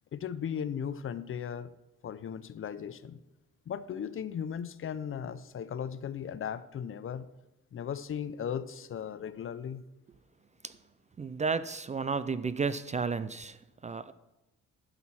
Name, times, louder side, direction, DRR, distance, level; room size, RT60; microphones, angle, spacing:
voice 1, 0.1-1.7 2.0-3.2 3.7-7.3 7.7-9.8, left 8 dB, 45° left, 15 dB, 0.6 m, -37 dB
voice 2, 11.2-14.1, right 5 dB, 25° right, 14 dB, 0.4 m, -33 dB
11.5 x 6.1 x 5.8 m, 0.96 s
cardioid pair, 90°, 30 cm